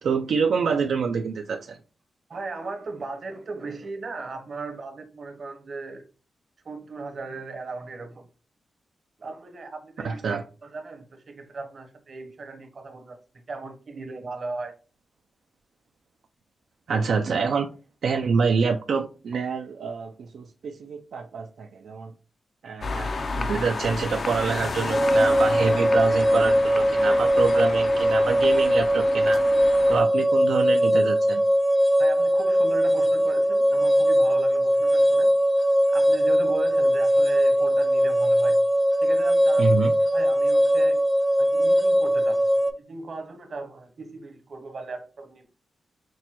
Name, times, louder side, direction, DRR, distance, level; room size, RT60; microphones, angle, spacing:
voice 1, 0.0-1.8 10.0-10.4 16.9-17.7 18.0-22.1 22.6-29.4 29.9-31.4 39.6-39.9, right 5 dB, 75° right, 0.3 m, -26 dB
voice 2, 2.3-6.1 6.6-8.3 9.2-14.8 32.0-35.4 35.9-38.7 39.0-39.8 40.1-41.0 41.4-45.5, right 3 dB, 50° right, 0.8 m, -37 dB
sound 1, 22.8-30.0, left 3 dB, 50° left, 0.4 m, -32 dB
sound 2, 24.9-42.7, equal, 5° right, 0.5 m, -20 dB
5.9 x 2.2 x 2.8 m
cardioid pair, 95°, 0 cm